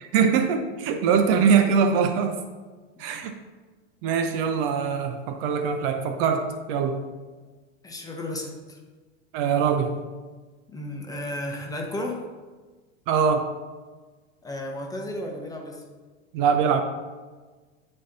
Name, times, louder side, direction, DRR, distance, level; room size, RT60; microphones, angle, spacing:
voice 1, 0.1-2.4 3.0-3.3 4.0-7.0 9.3-9.9 13.1-13.5 16.3-16.8, right 6 dB, 50° right, 7 dB, 0.6 m, -22 dB
voice 2, 7.8-8.8 10.7-12.2 14.4-15.8, left 1 dB, 10° left, 1 dB, 0.9 m, -33 dB
9.1 x 4.3 x 2.6 m, 1.4 s
hypercardioid pair, 105°, 35 cm